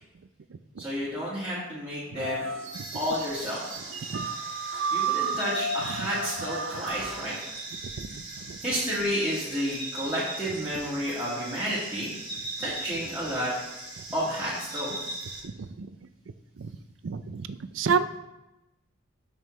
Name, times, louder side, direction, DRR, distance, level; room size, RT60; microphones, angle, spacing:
voice 1, 0.8-2.5 2.9-3.6 4.9-7.4 8.6-12.1 12.6-13.5 14.1-14.9, equal, 5° right, -10 dB, 1.9 m, -31 dB
sound 1, 2.1-7.4, right 4 dB, 80° right, 1.2 m, -33 dB
sound 2, 2.7-15.4, right 2 dB, 25° right, 1.6 m, -40 dB
voice 2, 8.0-8.6 15.8-15.9 16.6-16.7 17.0-18.2, right 5 dB, 65° right, 12 dB, 0.4 m, -29 dB
12.0 x 5.5 x 3.2 m, 0.96 s
head